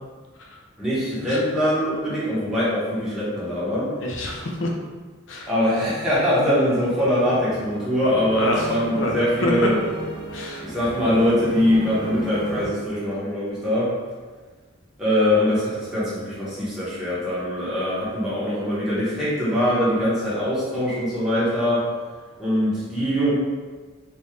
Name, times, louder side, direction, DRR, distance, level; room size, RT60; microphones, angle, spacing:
voice 1, 0.8-3.9 5.5-9.8 10.6-13.9 15.0-21.8 22.4-23.3, equal, 5° right, -11 dB, 1.2 m, -22 dB
voice 2, 4.0-4.7 5.3-5.5 8.4-9.5 10.3-10.7, left 1 dB, 65° left, -1 dB, 0.7 m, -28 dB
sound 1, 6.5-12.7, equal, 20° right, 0.9 m, -34 dB
3.5 x 2.7 x 3.3 m, 1.4 s
head